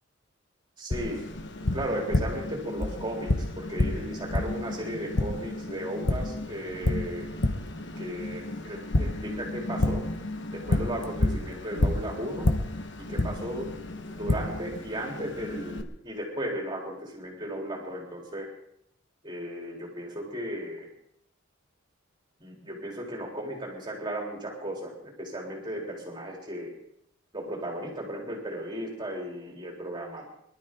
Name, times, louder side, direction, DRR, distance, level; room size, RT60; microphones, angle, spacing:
voice 1, 0.8-1.2 1.7-7.3 8.0-10.0 10.5-12.5 13.1-13.7 14.1-18.5 19.2-20.9 22.4-26.7 27.3-30.2, right 1 dB, 25° right, -2 dB, 3.5 m, -35 dB
Tap, 0.9-15.8, left 2 dB, 60° left, 1.2 m, -30 dB
23.0 x 12.5 x 3.8 m, 0.75 s
head